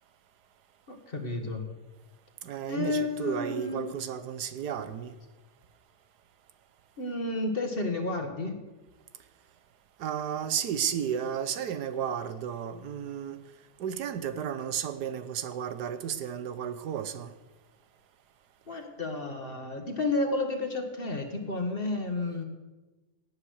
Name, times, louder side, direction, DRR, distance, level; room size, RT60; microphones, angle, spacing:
voice 1, 0.9-1.7 2.7-3.9 7.0-8.6 18.7-22.4, left 2 dB, 35° left, 1.9 m, -31 dB
voice 2, 2.4-5.2 10.0-13.4 13.8-17.3, right 8 dB, 90° right, 1.5 m, -33 dB
18.0 x 8.7 x 6.5 m
omnidirectional pair, 1.7 m